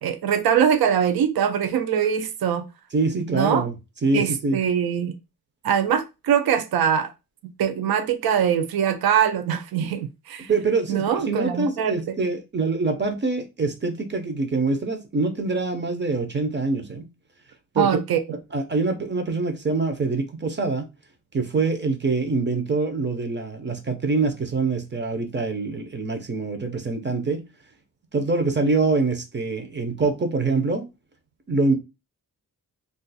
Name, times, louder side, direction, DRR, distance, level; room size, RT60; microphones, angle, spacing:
voice 1, 0.0-2.7 3.3-3.6 4.1-5.1 5.6-7.1 7.4-10.5 10.9-12.2 17.8-18.2, right 8 dB, 80° right, 0.5 m, -22 dB
voice 2, 2.9-3.7 4.0-4.6 10.5-17.1 17.7-17.9 18.5-20.9 21.3-27.4 28.1-30.9 31.5-31.7, right 3 dB, 30° right, 0.5 m, -24 dB
2.4 x 2.4 x 3.9 m
wide cardioid pair, 175°, 36 cm